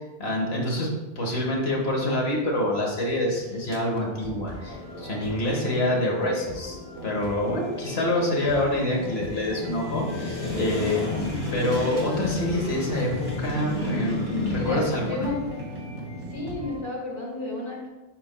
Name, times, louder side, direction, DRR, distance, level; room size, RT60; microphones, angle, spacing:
voice 1, 0.2-0.9 1.1-11.1 11.5-15.3, left 1 dB, 80° left, -1 dB, 1.6 m, -26 dB
sound 1, 1.5-16.7, left 2 dB, 20° right, 2.2 m, -34 dB
sound 2, 3.6-16.8, right 1 dB, 50° right, 1.2 m, -41 dB
voice 2, 10.9-11.4 14.5-15.4 16.3-17.9, left 2 dB, 25° left, -5 dB, 2.1 m, -33 dB
11.0 x 4.3 x 2.2 m, 1.1 s
omnidirectional pair, 1.0 m